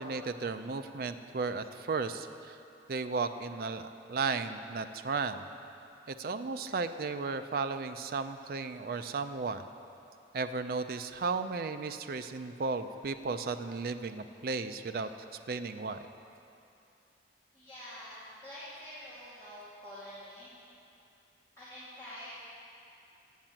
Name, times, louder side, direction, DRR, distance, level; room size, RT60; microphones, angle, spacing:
voice 1, 0.0-2.6 2.9-5.5 6.1-9.6 10.3-15.1 15.5-16.0, right 4 dB, 50° right, 9 dB, 0.4 m, -34 dB
voice 2, 17.5-20.5 21.6-22.3, equal, 15° left, -12 dB, 1.9 m, -47 dB
7.8 x 7.4 x 7.4 m, 2.7 s
head